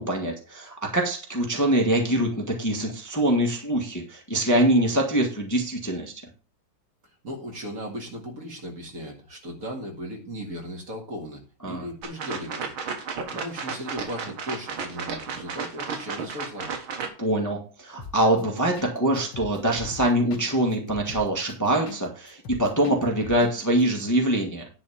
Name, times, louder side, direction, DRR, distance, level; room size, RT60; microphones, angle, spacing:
voice 1, 0.0-6.1 11.6-11.9 17.2-24.7, right 1 dB, 10° left, 1 dB, 1.4 m, -24 dB
voice 2, 7.2-12.7 13.3-16.7, equal, 40° right, 1 dB, 2.5 m, -37 dB
sound 1, 12.0-17.1, right 5 dB, 80° right, 2.3 m, -33 dB
sound 2, 18.0-18.4 18.8-18.9 19.2-22.0 22.3-23.5 23.8-23.9, left 5 dB, 65° left, 1.8 m, -40 dB
10.5 x 4.2 x 6.9 m, 0.34 s
omnidirectional pair, 2.3 m